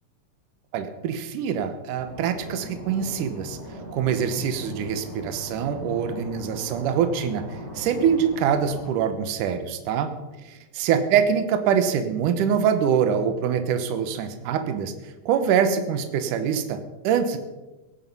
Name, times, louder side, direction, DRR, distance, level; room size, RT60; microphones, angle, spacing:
voice 1, 0.7-3.6 3.9-10.1 10.5-17.4, right 7 dB, 70° right, 9 dB, 2.6 m, -24 dB
sound 1, 2.0-8.9, left 1 dB, 15° right, 5.1 m, -39 dB
16.5 x 11.5 x 5.5 m, 1.1 s
omnidirectional pair, 4.0 m